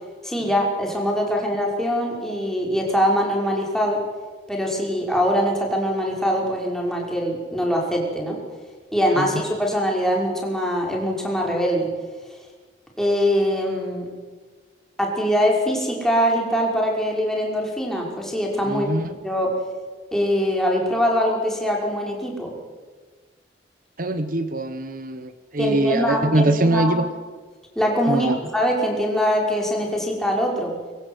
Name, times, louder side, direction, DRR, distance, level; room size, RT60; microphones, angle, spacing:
voice 1, 0.2-4.0 4.5-8.4 8.9-11.9 13.0-14.1 15.0-18.9 19.2-19.6 20.1-22.5 25.6-27.1 27.8-30.7, equal, 5° left, -1 dB, 5.6 m, -23 dB
voice 2, 18.7-19.1 24.0-27.0 28.1-28.4, right 1 dB, 50° right, 10 dB, 1.2 m, -22 dB
24.0 x 23.0 x 8.2 m, 1.5 s
head